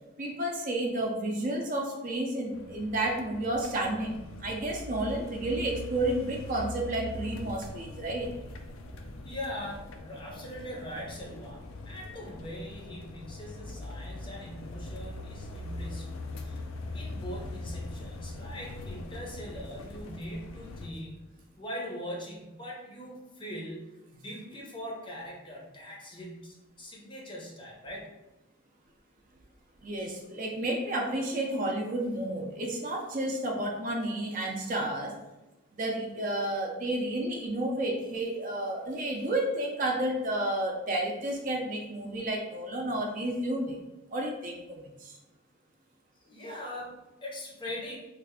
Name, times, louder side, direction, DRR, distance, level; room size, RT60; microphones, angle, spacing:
voice 1, 0.2-8.3 29.8-35.1 35.7-43.8 44.1-45.2, right 1 dB, 40° right, 0 dB, 0.5 m, -31 dB
sound 1, 2.5-20.9, left 2 dB, 80° left, 0.4 m, -42 dB
voice 2, 9.2-16.6 16.9-28.1 46.2-48.0, equal, 25° left, -2 dB, 0.6 m, -41 dB
3.2 x 2.4 x 3.5 m, 1.0 s
head